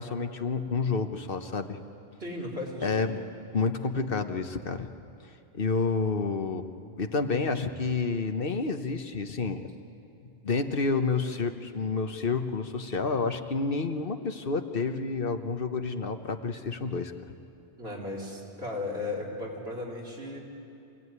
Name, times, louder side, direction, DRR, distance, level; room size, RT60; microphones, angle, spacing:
voice 1, 0.0-1.8 2.8-3.2 3.5-4.9 5.5-6.6 7.0-9.6 10.2-17.1, left 4 dB, 60° left, 7 dB, 1.3 m, -29 dB
voice 2, 2.2-3.2 17.8-20.4, left 2 dB, 85° right, -3 dB, 4.4 m, -36 dB
26.0 x 17.0 x 9.6 m, 2.8 s
omnidirectional pair, 1.0 m